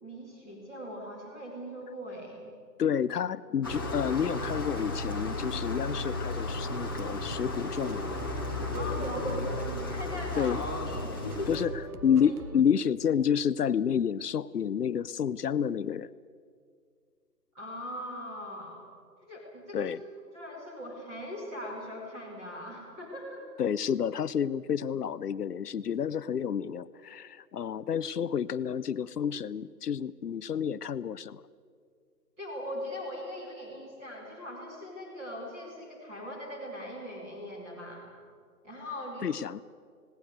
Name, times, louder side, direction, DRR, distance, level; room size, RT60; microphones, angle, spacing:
voice 1, 0.0-2.5 8.7-10.6 10.9-11.6 12.2-12.3 17.5-18.9 19.3-19.9 20.3-23.4 32.4-38.1 38.6-39.3, equal, 5° right, -4 dB, 2.1 m, -40 dB
voice 2, 2.8-8.3 10.4-10.6 11.5-11.7 12.0-16.1 19.7-20.0 23.6-31.4 39.2-39.6, left 8 dB, 70° left, 16 dB, 0.8 m, -29 dB
sound 1, 3.6-11.6, left 2 dB, 15° left, 1.1 m, -34 dB
sound 2, 7.3-12.6, right 3 dB, 65° right, 1.5 m, -45 dB
19.5 x 17.5 x 8.0 m, 2.1 s
hypercardioid pair, 175°, 49 cm